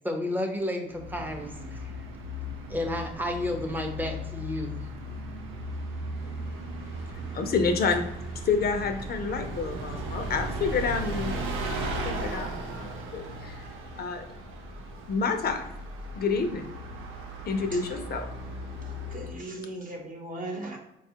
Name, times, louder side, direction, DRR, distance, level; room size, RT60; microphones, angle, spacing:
voice 1, 0.0-1.9 2.7-4.7, left 1 dB, 10° right, 3 dB, 0.6 m, -31 dB
Bus, 0.9-19.4, right 1 dB, 85° right, 0.5 m, -36 dB
voice 2, 6.2-8.1 8.3-13.6 14.0-14.3 15.1-15.7 16.1-16.8 17.5-18.3, left 5 dB, 50° left, 6 dB, 0.5 m, -29 dB
voice 3, 19.1-20.8, right 1 dB, 45° right, 1 dB, 0.9 m, -38 dB
4.0 x 2.3 x 2.8 m, 0.86 s
cardioid pair, 90°, 20 cm